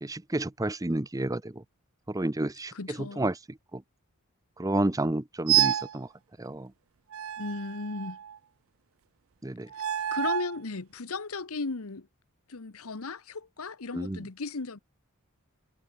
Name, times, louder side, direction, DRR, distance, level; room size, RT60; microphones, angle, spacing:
voice 1, 0.0-1.6 2.1-3.8 4.6-6.1 6.4-6.7 9.4-9.7 13.9-14.2, right 1 dB, 15° right, 0.6 m, -31 dB
voice 2, 2.7-3.3 7.4-8.2 9.7-9.8 10.1-12.1 12.5-14.8, left 3 dB, 75° left, 1.1 m, -36 dB
sound 1, 5.5-6.0 7.1-8.4 9.7-10.6, right 12 dB, 65° right, 0.4 m, -28 dB
head